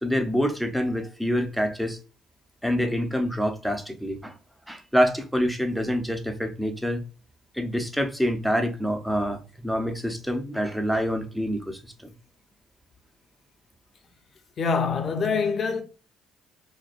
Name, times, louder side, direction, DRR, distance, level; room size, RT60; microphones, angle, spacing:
voice 1, 0.0-2.0 2.6-4.4 4.7-7.0 7.5-12.1, equal, ahead, 0.6 m, -26 dB
voice 2, 14.6-15.8, left 5 dB, 50° left, 0.7 m, -25 dB
4.1 x 2.2 x 2.5 m
supercardioid pair, 75°, 0 cm